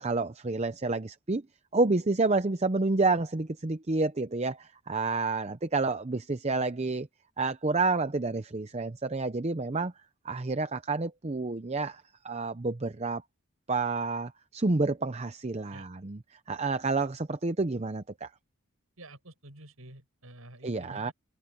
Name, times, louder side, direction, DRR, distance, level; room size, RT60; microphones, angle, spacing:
voice 1, 0.0-1.4 1.7-7.1 7.4-9.9 10.2-13.2 13.7-16.2 16.5-18.3 20.6-21.1, right 3 dB, 30° right, 0.6 m, -29 dB
voice 2, 19.0-21.1, right 1 dB, 80° right, 6.5 m, -49 dB
head